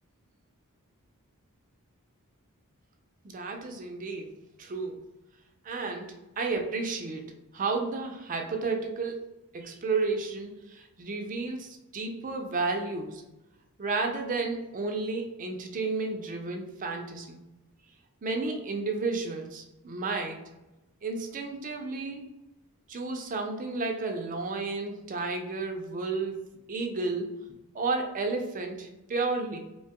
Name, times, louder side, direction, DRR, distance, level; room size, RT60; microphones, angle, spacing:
voice 1, 3.2-4.3 4.6-5.1 5.6-9.2 9.5-13.2 13.8-17.4 18.2-20.4 21.0-22.3 22.9-26.4 26.7-27.5 27.7-29.6, right 3 dB, 35° right, 3 dB, 0.4 m, -32 dB
2.7 x 2.2 x 2.8 m, 0.97 s
head